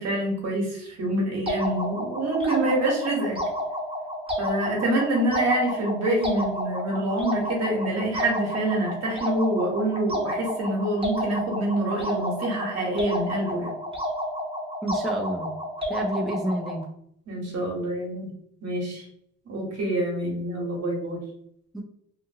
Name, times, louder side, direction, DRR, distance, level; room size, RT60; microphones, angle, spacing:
voice 1, 0.0-3.4 4.4-13.7 17.3-18.3 18.6-19.0 19.5-21.2, right 1 dB, 60° right, 0 dB, 1.1 m, -26 dB
sound 1, 1.5-16.8, equal, 20° right, 0.8 m, -31 dB
voice 2, 14.8-15.5 15.9-16.9 21.7-21.8, right 1 dB, ahead, 0 dB, 0.4 m, -29 dB
2.7 x 2.5 x 2.7 m, 0.70 s
cardioid pair, 90°, 30 cm